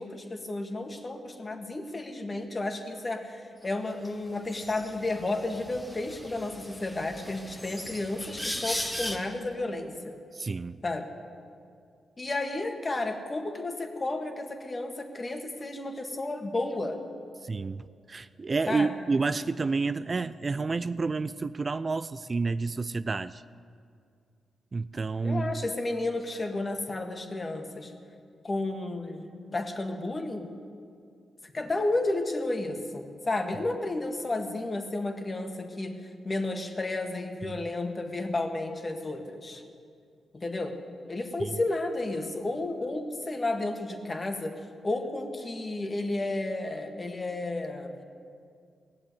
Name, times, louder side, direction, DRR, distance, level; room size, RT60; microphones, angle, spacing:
voice 1, 0.0-10.1 10.8-11.1 12.2-17.0 18.7-18.9 25.2-27.9 28.4-30.5 31.4-39.6 40.3-40.8 41.1-44.5 44.8-47.9, left 2 dB, 35° left, 4 dB, 1.9 m, -32 dB
sound 1, 4.0-4.1 4.5-9.2, equal, 10° left, 1.8 m, -38 dB
voice 2, 10.3-10.8 17.4-23.4 24.7-25.5 37.4-37.6 41.4-41.5, right 4 dB, 40° right, 14 dB, 0.4 m, -30 dB
17.5 x 7.5 x 9.6 m, 2.3 s
cardioid pair, 55°, 0 cm